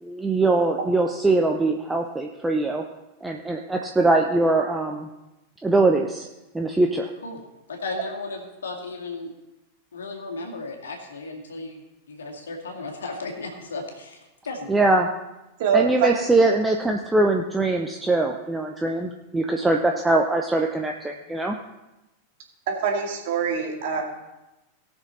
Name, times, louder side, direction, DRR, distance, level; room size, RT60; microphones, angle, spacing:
voice 1, 0.0-2.8 3.2-5.1 5.6-6.3 6.5-7.1 14.7-15.1 15.7-21.6, right 2 dB, 10° right, 2 dB, 0.7 m, -22 dB
voice 2, 7.7-9.3 9.9-14.7, left 3 dB, 65° left, 1 dB, 2.1 m, -35 dB
voice 3, 15.6-16.1 22.7-24.0, right 6 dB, 50° right, 0 dB, 2.2 m, -24 dB
18.0 x 6.3 x 4.2 m, 1.0 s
figure-of-eight pair, 90°, 0 cm